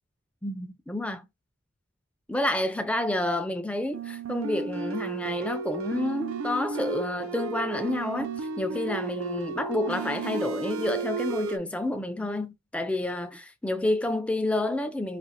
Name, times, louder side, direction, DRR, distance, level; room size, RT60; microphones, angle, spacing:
voice 1, 0.4-1.3 2.3-15.2, left 1 dB, 5° left, 0.4 m, -29 dB
sound 1, 3.9-11.6, right 5 dB, 80° right, 0.5 m, -33 dB
5.0 x 2.5 x 2.8 m
head